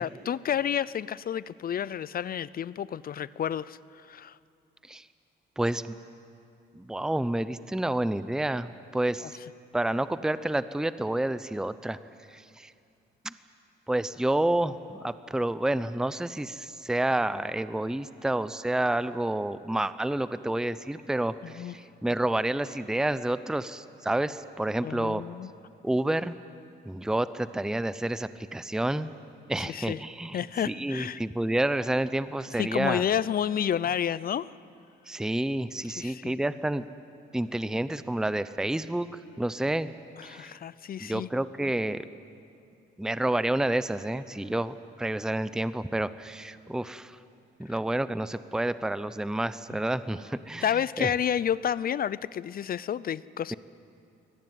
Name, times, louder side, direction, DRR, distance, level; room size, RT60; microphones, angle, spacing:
voice 1, 0.0-4.4 9.2-9.3 21.4-21.8 24.8-25.5 29.6-30.0 30.3-31.2 32.6-34.5 35.9-36.3 40.2-41.3 47.7-47.8 50.6-53.5, left 9 dB, 45° left, 20 dB, 0.5 m, -30 dB
voice 2, 5.6-6.0 6.7-9.4 9.7-12.0 12.3-12.7 13.2-13.3 13.9-25.2 25.8-26.3 26.8-29.1 29.5-30.4 30.6-33.0 35.1-36.8 37.3-39.1 39.4-39.9 40.2-40.6 41.0-42.1 43.0-47.2 47.6-50.6 51.0-51.1, right 1 dB, 5° right, 14 dB, 0.7 m, -29 dB
23.5 x 18.5 x 9.4 m, 2.5 s
cardioid pair, 90°, 20 cm